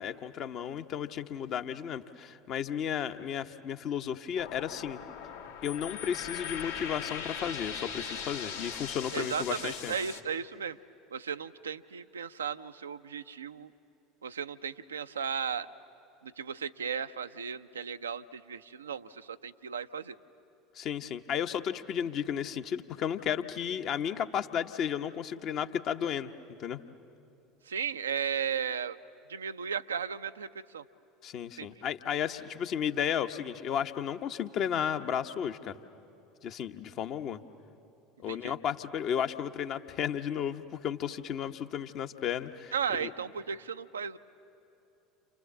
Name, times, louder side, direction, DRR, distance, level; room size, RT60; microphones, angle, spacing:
voice 1, 0.0-5.0 5.6-9.9 20.7-26.3 26.6-26.8 31.2-35.8 36.4-37.4 38.2-42.7 43.0-43.1, left 8 dB, 45° left, 7 dB, 1.0 m, -33 dB
sound 1, 4.4-10.2, left 7 dB, 75° left, 1.8 m, -40 dB
voice 2, 9.1-10.8 11.1-13.7 14.2-15.7 16.2-20.2 27.6-29.0 29.3-30.8 31.6-31.7 38.3-38.5 42.7-44.2, right 7 dB, 80° right, 10 dB, 0.6 m, -35 dB
29.0 x 28.0 x 7.3 m, 2.8 s
figure-of-eight pair, 70°, 0 cm